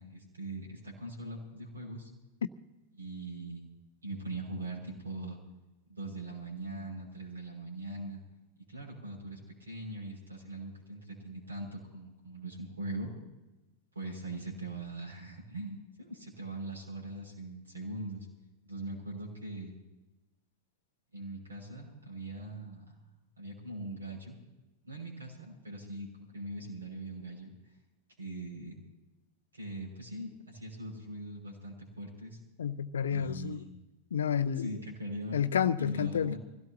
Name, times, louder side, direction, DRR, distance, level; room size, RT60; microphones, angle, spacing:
voice 1, 0.0-2.1 3.0-3.7 4.0-5.4 5.9-8.2 8.7-13.1 13.9-18.3 18.6-19.7 21.1-23.0 23.4-24.3 24.8-27.5 28.2-28.8 29.5-32.4 33.1-33.7 34.6-35.4 35.8-36.4, right 2 dB, 80° right, -2 dB, 5.7 m, -41 dB
voice 2, 32.6-33.6 34.1-34.7 35.3-36.3, left 8 dB, 65° left, 15 dB, 0.6 m, -30 dB
25.0 x 16.5 x 2.8 m, 1.0 s
figure-of-eight pair, 90°, 0 cm